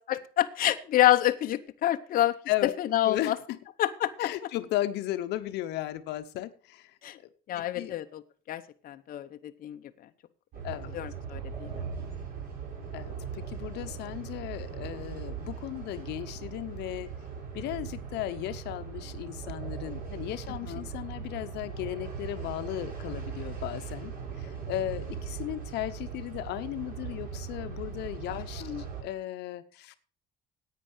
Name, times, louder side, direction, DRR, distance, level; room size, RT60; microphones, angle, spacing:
voice 1, 0.1-2.3 2.8-3.4 3.8-4.3 7.0-7.2 7.5-8.2 8.5-9.8 10.9-11.8 20.7-20.8 28.6-28.8, left 13 dB, 55° left, 8 dB, 0.8 m, -27 dB
voice 2, 3.0-3.6 4.2-7.0 7.5-8.0 10.6-11.0 12.9-17.1 17.5-28.6 29.0-29.9, left 14 dB, 80° left, 11 dB, 0.9 m, -35 dB
sound 1, 10.5-29.0, right 6 dB, 55° right, 7.4 m, -39 dB
10.0 x 9.1 x 6.3 m, 0.41 s
cardioid pair, 110°, 17 cm